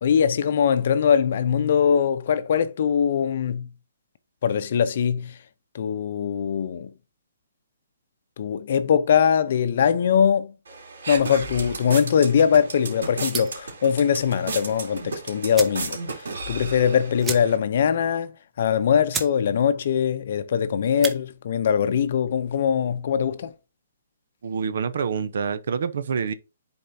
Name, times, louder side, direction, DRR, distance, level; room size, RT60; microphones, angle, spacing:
voice 1, 0.0-3.7 4.4-5.4 5.7-6.9 8.4-10.5 11.1-23.5, left 7 dB, 50° left, 0.6 m, -22 dB
sound 1, 10.7-17.6, right 3 dB, 80° right, 2.8 m, -34 dB
sound 2, 13.3-13.7 15.0-15.1 15.5-15.9 16.2-16.3 16.5-16.7 17.2-17.8 18.1-18.2 18.7-18.8 19.1-19.4 19.7-20.1 20.8-21.2, right 5 dB, 10° right, 0.6 m, -32 dB
voice 2, 24.4-26.3, right 6 dB, 60° right, 0.8 m, -27 dB
10.0 x 4.3 x 2.7 m
hypercardioid pair, 170°, 0 cm